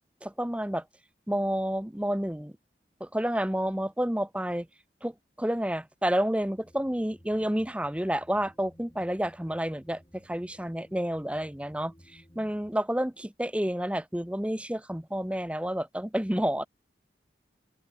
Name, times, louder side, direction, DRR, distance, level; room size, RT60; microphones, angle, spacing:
voice 1, 0.2-0.8 1.3-2.5 3.0-4.7 5.0-16.7, equal, 5° right, 0.8 m, -30 dB
sound 1, 6.4-12.8, equal, 25° left, 3.8 m, -57 dB
open air
head